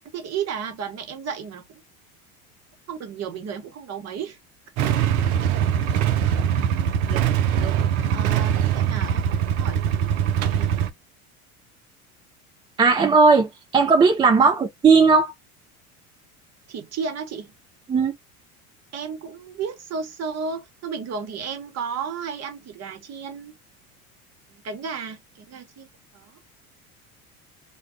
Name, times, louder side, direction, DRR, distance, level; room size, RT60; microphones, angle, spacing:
voice 1, 0.1-1.8 2.9-4.4 5.4-5.5 8.1-10.9 14.4-14.5 16.7-17.5 18.9-23.5 24.5-25.9 26.1-26.4, right 6 dB, 35° right, 1.0 m, -33 dB
Motorcycle / Engine starting / Idling, 4.8-10.9, right 9 dB, 70° right, 0.6 m, -22 dB
voice 2, 12.8-15.3 17.9-18.1, right 4 dB, 10° right, 0.3 m, -17 dB
2.2 x 2.2 x 2.4 m
hypercardioid pair, 80°, 43 cm